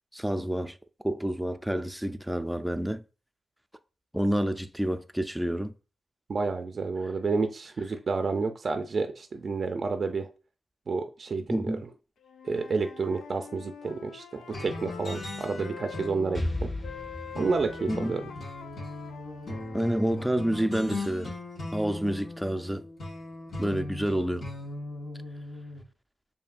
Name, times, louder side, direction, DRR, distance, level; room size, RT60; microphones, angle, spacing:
voice 1, 0.1-0.8 1.0-3.0 4.1-5.7 11.5-11.8 17.9-18.1 19.7-21.3 21.7-22.8 23.6-24.4, equal, 5° right, 0.5 m, -28 dB
voice 2, 6.3-10.3 10.9-11.9 12.4-16.7 17.4-18.3, right 4 dB, 60° right, 0.5 m, -30 dB
Wind instrument woodwind instrument, 12.2-16.1 16.8-20.3, left 7 dB, 90° left, 0.4 m, -45 dB
sound 1, 14.5-25.8, left 2 dB, 70° left, 1.4 m, -39 dB
Explosion, 16.3-20.1, left 1 dB, 50° left, 2.5 m, -36 dB
6.8 x 2.8 x 2.5 m
cardioid pair, 60°, 0 cm